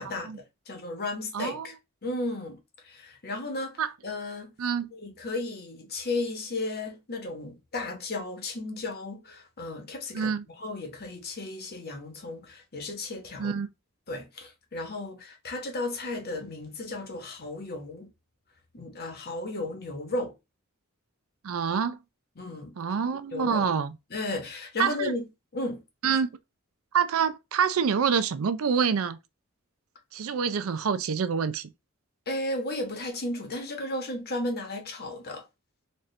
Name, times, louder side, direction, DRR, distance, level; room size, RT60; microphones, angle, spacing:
voice 1, 0.0-1.7 2.0-2.6 2.8-4.5 4.9-10.3 10.6-13.5 14.1-18.1 18.7-20.3 22.4-22.7 23.3-23.6 24.1-26.2 32.3-35.4, left 2 dB, 50° left, 1.1 m, -34 dB
voice 2, 1.3-1.7 3.8-3.9 4.6-4.9 10.1-10.4 13.4-13.7 21.4-22.0 22.8-24.0 24.8-25.1 26.0-26.3 26.9-29.2 30.1-31.7, right 6 dB, 75° right, 0.4 m, -26 dB
4.2 x 2.5 x 3.2 m
head